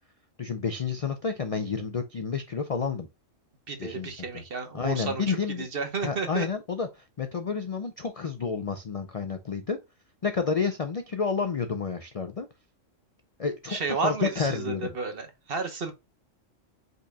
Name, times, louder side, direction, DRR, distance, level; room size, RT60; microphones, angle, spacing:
voice 1, 0.4-3.1 3.8-4.4 4.7-5.7 6.0-9.8 10.2-12.5 13.4-13.8 14.0-15.0, left 5 dB, 55° left, 0.4 m, -30 dB
voice 2, 3.7-6.5 13.7-15.9, right 4 dB, 50° right, 1.1 m, -32 dB
5.3 x 4.2 x 2.2 m
omnidirectional pair, 1.4 m